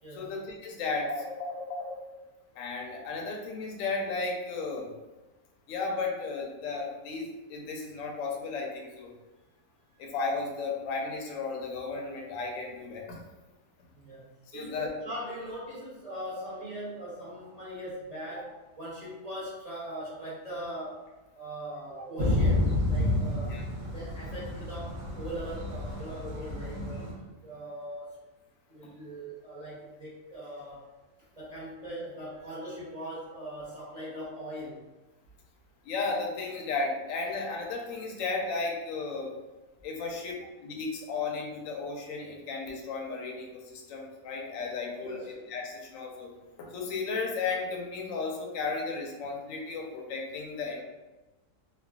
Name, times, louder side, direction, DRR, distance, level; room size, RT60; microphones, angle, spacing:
voice 1, 0.2-2.1 2.6-4.9 5.7-9.1 10.0-13.2 14.5-14.9 23.5-23.6 35.8-39.3 39.8-46.3 46.6-50.8, left 4 dB, 70° left, 0 dB, 0.8 m, -34 dB
voice 2, 13.9-14.3 14.5-21.1 21.3-23.7 23.9-27.1 27.4-28.1 28.7-30.8 31.4-34.8 45.0-45.3, right 1 dB, 35° right, -9 dB, 0.7 m, -40 dB
Thunder / Rain, 22.2-27.1, left 1 dB, 75° right, 1.5 m, -30 dB
3.2 x 2.1 x 2.3 m, 1.1 s
omnidirectional pair, 1.7 m